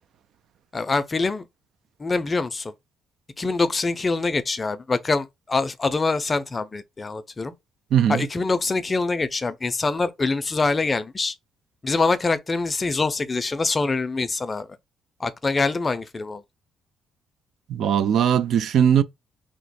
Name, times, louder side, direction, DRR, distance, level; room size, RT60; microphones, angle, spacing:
voice 1, 0.7-1.5 2.0-2.7 3.4-7.5 8.1-11.3 11.8-14.7 15.2-16.4, left 3 dB, 30° left, 0.5 m, -24 dB
voice 2, 7.9-8.2 17.7-19.0, right 9 dB, 70° right, 0.3 m, -19 dB
2.9 x 2.0 x 4.1 m
cardioid pair, 90°, 0 cm